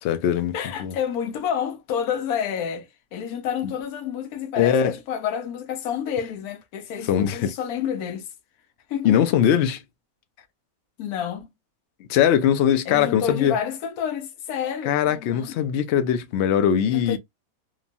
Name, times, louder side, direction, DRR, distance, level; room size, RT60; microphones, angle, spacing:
voice 1, 0.0-0.5 0.8-0.9 3.6-3.7 4.6-5.0 7.1-7.5 9.0-9.8 12.1-13.5 14.9-17.2, left 9 dB, 65° left, 0.7 m, -21 dB
voice 2, 0.5-8.3 8.9-9.2 11.0-11.5 12.9-15.6 16.9-17.2, left 8 dB, 85° left, 1.1 m, -29 dB
3.0 x 2.2 x 2.5 m
omnidirectional pair, 1.6 m